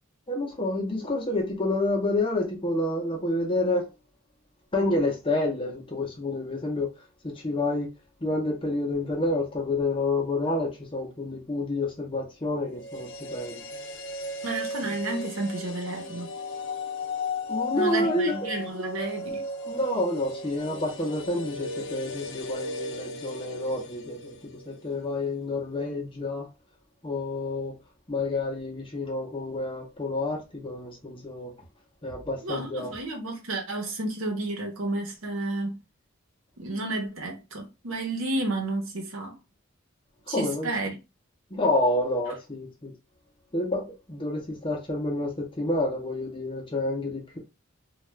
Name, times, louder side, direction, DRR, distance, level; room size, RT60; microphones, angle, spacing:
voice 1, 0.3-3.9 4.7-6.9 7.2-7.9 8.2-13.6 17.5-18.5 19.7-26.5 27.0-27.8 28.1-31.5 32.0-32.9 40.3-40.7 41.5-42.9 43.5-47.4, left 2 dB, 25° left, 0.7 m, -29 dB
sound 1, 12.7-24.9 25.1-25.2, left 2 dB, 60° left, 0.4 m, -36 dB
voice 2, 14.4-16.3 17.7-19.4 32.4-35.8 36.6-39.3 40.3-41.0, right 2 dB, 75° right, 0.9 m, -31 dB
2.4 x 2.3 x 3.1 m
head